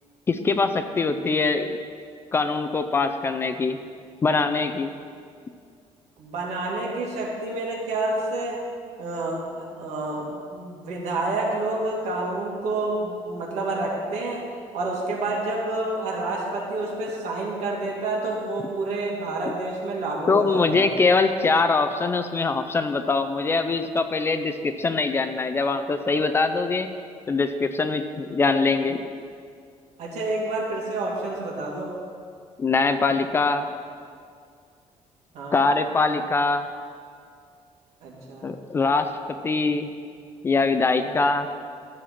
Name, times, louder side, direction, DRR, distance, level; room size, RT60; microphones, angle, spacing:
voice 1, 0.3-1.8 2.3-3.8 4.2-4.9 20.3-26.9 27.3-29.0 32.6-33.7 35.5-36.7 38.4-39.1 39.4-39.9 40.4-41.5, left 3 dB, 20° left, 8 dB, 0.4 m, -23 dB
voice 2, 6.2-8.6 9.0-14.4 14.7-20.8 30.0-31.9 35.3-35.6 38.0-38.5 41.0-41.2, right 2 dB, 80° right, -3 dB, 2.3 m, -29 dB
12.5 x 7.3 x 4.3 m, 2.2 s
cardioid pair, 175°, 12 cm